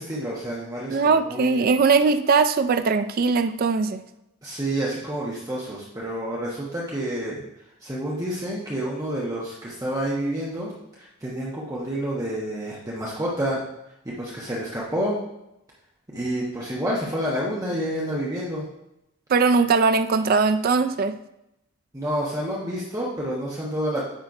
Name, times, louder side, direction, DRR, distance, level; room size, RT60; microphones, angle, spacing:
voice 1, 0.0-1.6 4.4-7.4 7.8-10.7 11.0-13.6 14.0-15.2 16.1-18.7 21.9-24.0, right 1 dB, 15° right, 1.1 m, -29 dB
voice 2, 0.9-4.0 19.3-21.2, right 4 dB, 45° right, 0.4 m, -20 dB
9.2 x 3.1 x 4.9 m
head